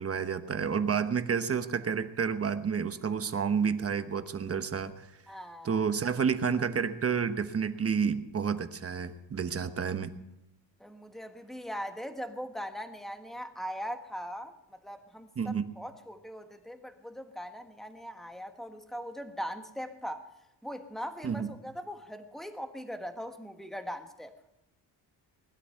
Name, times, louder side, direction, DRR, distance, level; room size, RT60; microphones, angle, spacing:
voice 1, 0.0-5.1 5.6-10.1 15.4-15.7 21.2-21.5, right 6 dB, 35° right, 9 dB, 1.1 m, -30 dB
voice 2, 5.3-5.8 10.8-20.3 20.6-24.4, equal, ahead, 7 dB, 1.3 m, -40 dB
20.0 x 12.5 x 5.7 m, 0.91 s
cardioid pair, 135°, 43 cm